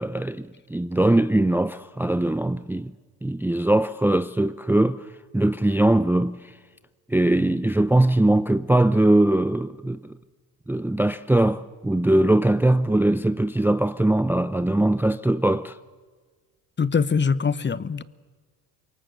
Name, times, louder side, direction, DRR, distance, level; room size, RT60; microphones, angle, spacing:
voice 1, 0.0-2.9 3.2-5.1 5.3-6.5 7.1-10.1 10.7-15.8, right 1 dB, 5° right, 0.6 m, -21 dB
voice 2, 16.8-18.0, left 5 dB, 25° left, 1.0 m, -23 dB
26.0 x 23.0 x 7.9 m
hypercardioid pair, 65°, 45 cm